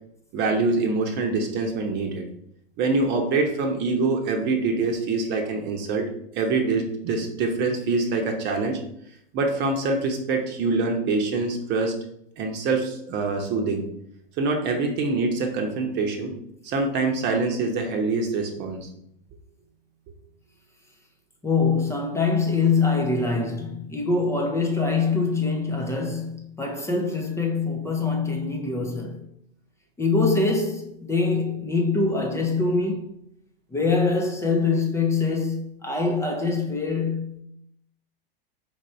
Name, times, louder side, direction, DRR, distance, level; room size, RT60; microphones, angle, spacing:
voice 1, 0.3-2.2 2.8-6.0 6.3-8.8 9.3-11.9 12.4-13.8 14.4-16.3 16.6-18.9, right 3 dB, 35° right, 0.9 m, -25 dB
voice 2, 21.4-29.3 30.0-33.1 33.7-37.4, left 4 dB, 10° left, 0.6 m, -24 dB
4.5 x 2.6 x 4.3 m
hypercardioid pair, 115°, 29 cm